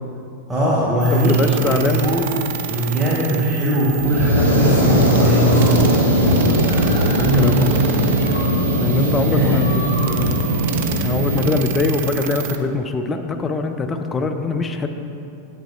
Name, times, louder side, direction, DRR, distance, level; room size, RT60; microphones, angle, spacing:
voice 1, 0.5-2.3 2.7-5.7 7.3-7.8 9.3-9.5, right 1 dB, 10° right, -7 dB, 0.9 m, -19 dB
sound 1, 1.0-12.6, right 10 dB, 50° right, 0.4 m, -30 dB
voice 2, 1.1-2.1 6.1-6.7 7.1-7.8 8.8-9.6 10.0-10.4 11.0-14.9, left 3 dB, 20° left, 6 dB, 0.4 m, -23 dB
Fire, 3.9-11.5, equal, 75° left, 1.2 m, -18 dB
sound 2, 5.2-11.1, left 2 dB, 90° right, 1.4 m, -35 dB
8.4 x 6.1 x 2.4 m, 2.7 s
figure-of-eight pair, 90°, 0 cm